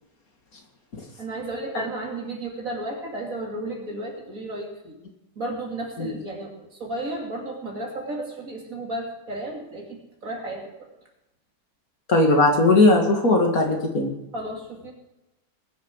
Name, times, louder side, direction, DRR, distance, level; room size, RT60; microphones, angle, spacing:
voice 1, 1.2-5.0 5.4-10.9 14.3-14.9, right 1 dB, 50° right, 0 dB, 3.3 m, -33 dB
voice 2, 12.1-14.1, left 2 dB, 55° left, 2 dB, 2.6 m, -18 dB
20.5 x 7.3 x 6.3 m, 0.94 s
omnidirectional pair, 1.8 m